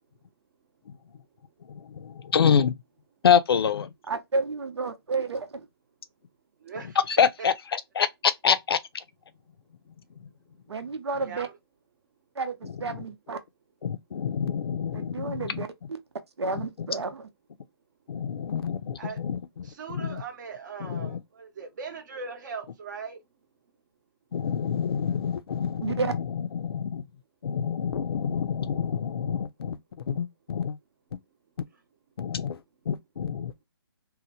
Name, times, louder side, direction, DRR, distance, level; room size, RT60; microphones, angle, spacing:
voice 1, 1.9-2.7 3.2-3.9 7.1-8.8 13.8-15.6 18.1-19.4 19.9-20.2 20.8-21.2 24.3-27.0 27.4-29.8 30.1-30.8 32.2-32.6 32.9-33.5, left 7 dB, 65° left, 0.6 m, -26 dB
voice 2, 4.1-5.7 10.7-11.5 12.4-13.4 14.9-16.0 16.4-17.3 25.8-26.1, right 4 dB, 85° right, 0.8 m, -31 dB
voice 3, 6.6-7.0 7.4-7.5 11.2-11.6 19.0-19.2 19.6-23.2 31.7-31.8, right 5 dB, 45° right, 0.9 m, -39 dB
2.8 x 2.1 x 4.1 m
hypercardioid pair, 155°, 14 cm